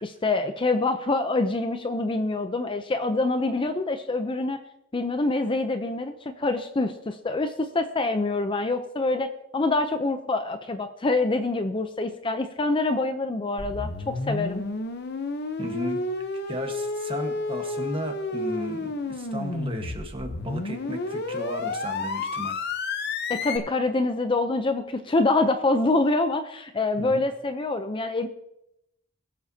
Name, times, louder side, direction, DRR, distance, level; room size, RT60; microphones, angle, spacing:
voice 1, 0.0-4.6 4.9-9.3 9.5-14.7 23.3-28.3, left 2 dB, 25° left, 8 dB, 0.6 m, -25 dB
sound 1, 13.6-23.6, left 3 dB, 55° left, 0.8 m, -31 dB
voice 2, 15.6-16.0 16.5-22.6 26.9-27.2, right 1 dB, 25° right, 4 dB, 1.3 m, -35 dB
20.5 x 7.4 x 2.8 m, 0.83 s
head